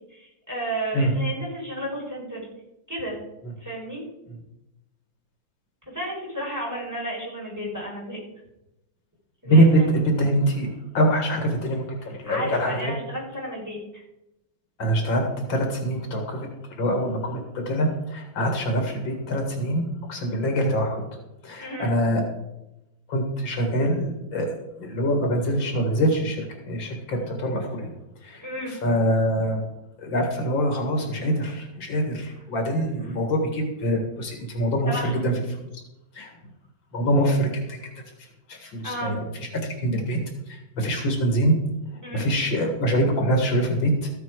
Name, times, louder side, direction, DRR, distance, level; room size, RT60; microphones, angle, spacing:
voice 1, 0.1-2.5 2.9-3.2 3.6-4.0 5.9-8.2 9.4-10.0 12.2-14.0 21.6-21.9 28.4-28.8 33.1-33.2 34.9-35.3 38.8-39.2 42.0-42.3, right 1 dB, 10° right, -4 dB, 4.4 m, -32 dB
voice 2, 10.1-10.7 10.9-12.9 14.8-21.0 21.4-22.2 23.1-27.9 28.2-28.4 28.7-29.6 30.0-35.3 36.1-36.3 36.9-37.8 38.5-39.2 39.6-40.2 40.5-41.6 42.1-44.1, equal, 75° left, 3 dB, 2.6 m, -24 dB
14.0 x 8.6 x 4.7 m, 0.91 s
omnidirectional pair, 2.1 m